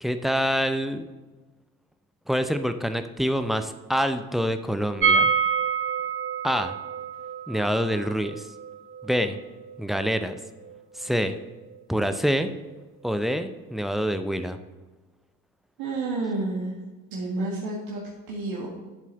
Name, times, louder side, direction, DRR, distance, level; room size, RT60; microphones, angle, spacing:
voice 1, 0.0-1.1 2.3-5.3 6.4-6.8 7.5-8.5 9.0-9.4 9.8-10.4 11.0-11.4 11.9-12.5 13.0-14.6, equal, ahead, 8 dB, 0.7 m, -26 dB
sound 1, 5.0-10.8 11.0-11.1 11.4-11.5, right 6 dB, 30° right, 1.0 m, -27 dB
voice 2, 15.8-16.8 17.1-18.0 18.3-18.7, right 2 dB, 60° right, -4 dB, 2.0 m, -30 dB
11.5 x 7.4 x 4.2 m, 1.2 s
figure-of-eight pair, 55°, 42 cm